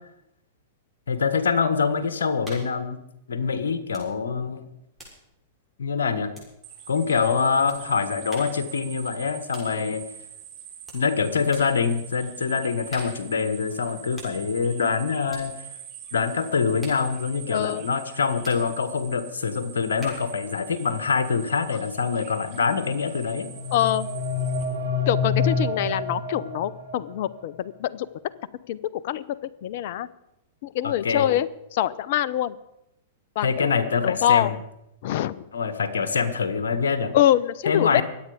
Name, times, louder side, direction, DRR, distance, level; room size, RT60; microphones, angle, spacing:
voice 1, 1.1-3.0 3.3-4.6 5.8-6.3 6.9-10.0 10.9-15.5 16.1-23.5 30.8-31.3 33.4-34.6 35.5-37.1 37.7-38.0, left 5 dB, 75° left, 11 dB, 1.6 m, -25 dB
sound 1, 2.4-2.8 3.9-4.2 4.5-6.8 7.7-7.9 8.3-8.7 9.5-9.8 10.9-11.1 11.5-11.8 12.9-13.3 14.1-14.4 15.3-15.5 16.8-17.1 18.4-18.7 20.0-20.4, equal, ahead, 6.7 m, -45 dB
sound 2, 6.6-24.6, right 9 dB, 45° right, 4.4 m, -43 dB
voice 2, 17.5-17.9 23.7-24.1 25.1-28.1 28.7-30.1 30.6-32.6 33.4-34.6 35.0-35.5 37.1-38.0, left 12 dB, 55° left, 17 dB, 0.7 m, -25 dB
sound 3, 23.2-27.2, left 4 dB, 90° right, 3.2 m, -28 dB
23.5 x 9.0 x 5.1 m, 0.84 s
hypercardioid pair, 105°, 0 cm